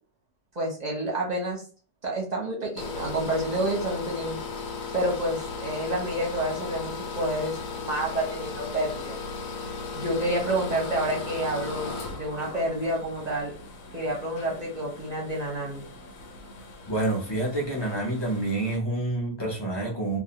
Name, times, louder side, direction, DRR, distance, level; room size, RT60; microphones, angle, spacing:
voice 1, 0.5-1.6 2.0-4.4 4.9-9.2 10.0-13.5 13.9-15.8, right 1 dB, 40° right, -2 dB, 0.8 m, -29 dB
sound 1, 2.8-18.8, left 4 dB, 85° left, 1.0 m, -37 dB
voice 2, 16.9-20.2, right 2 dB, 25° left, -3 dB, 0.6 m, -28 dB
2.5 x 2.1 x 2.9 m, 0.39 s
omnidirectional pair, 1.4 m